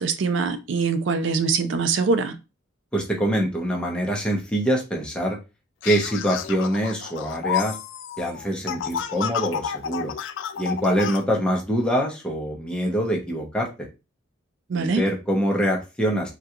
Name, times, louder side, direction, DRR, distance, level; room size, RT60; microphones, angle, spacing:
voice 1, 0.0-2.4 14.7-15.0, right 4 dB, 65° right, 9 dB, 0.4 m, -23 dB
voice 2, 2.9-5.4 5.8-7.8 8.2-10.1 10.6-13.7 14.7-16.3, equal, 5° left, -1 dB, 0.7 m, -24 dB
sound 1, 5.8-11.2, left 8 dB, 65° left, 0.3 m, -30 dB
3.7 x 2.3 x 2.8 m, 0.28 s
head